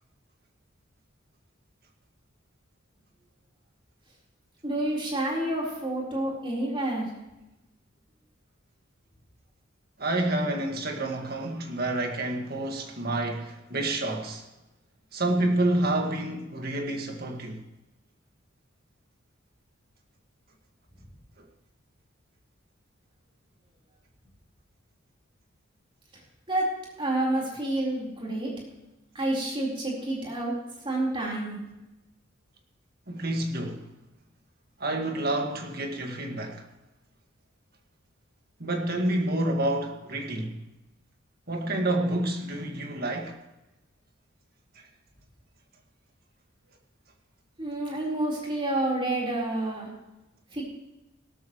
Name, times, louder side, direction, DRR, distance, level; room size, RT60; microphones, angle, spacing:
voice 1, 4.6-7.1 26.5-26.6 27.0-28.5 29.1-30.6 30.8-31.6 47.6-49.9 50.5-50.6, right 1 dB, 25° right, 4.1 m, -29 dB
voice 2, 10.0-14.5 15.1-17.6 33.1-33.8 34.8-36.6 38.6-40.6 41.5-43.4 44.8-44.9, right 1 dB, 50° right, 1.8 m, -28 dB
17.0 x 13.0 x 3.1 m
head